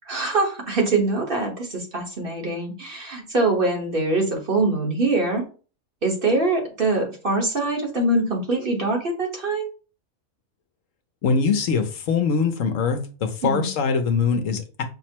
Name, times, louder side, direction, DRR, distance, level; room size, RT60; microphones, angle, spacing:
voice 1, 0.1-5.4 6.0-9.7 13.4-13.7, right 2 dB, 45° right, 1.2 m, -23 dB
voice 2, 11.2-14.8, left 5 dB, 70° left, 1.0 m, -23 dB
5.8 x 2.0 x 4.4 m
omnidirectional pair, 1.5 m